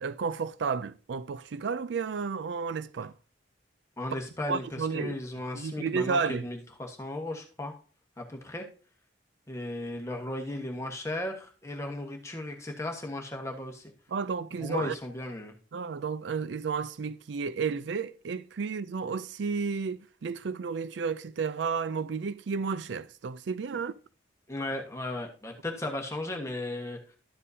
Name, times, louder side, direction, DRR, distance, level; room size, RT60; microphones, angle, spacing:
voice 1, 0.0-3.1 4.5-5.1 5.5-6.5 14.1-14.9 15.7-23.9, right 5 dB, 70° right, 0.4 m, -32 dB
voice 2, 4.0-7.7 8.2-8.6 9.5-13.9 14.6-15.5 24.5-27.2, left 1 dB, 15° left, 1.3 m, -36 dB
12.5 x 7.5 x 2.7 m
head